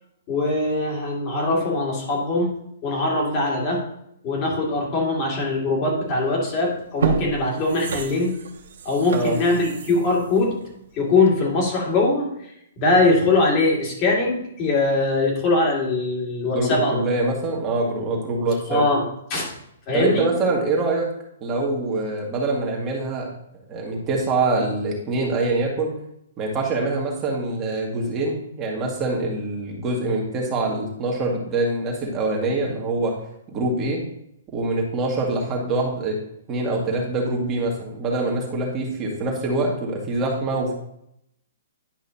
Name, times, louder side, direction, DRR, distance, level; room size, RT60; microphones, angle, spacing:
voice 1, 0.3-3.9 4.2-8.4 8.8-10.6 10.9-12.3 12.8-17.0 18.7-19.5 19.9-20.3, left 2 dB, 30° left, -2 dB, 2.3 m, -22 dB
sound 1, 6.2-6.4 6.8-11.5 11.9-12.0, right 5 dB, 70° right, 1.2 m, -30 dB
voice 2, 16.5-18.8 19.9-21.1 21.4-23.3 23.7-25.9 26.4-33.1 33.5-34.0 34.5-36.2 36.5-40.7, right 2 dB, 20° right, -1 dB, 1.8 m, -24 dB
10.5 x 5.5 x 2.8 m, 0.76 s
hypercardioid pair, 160°, 0 cm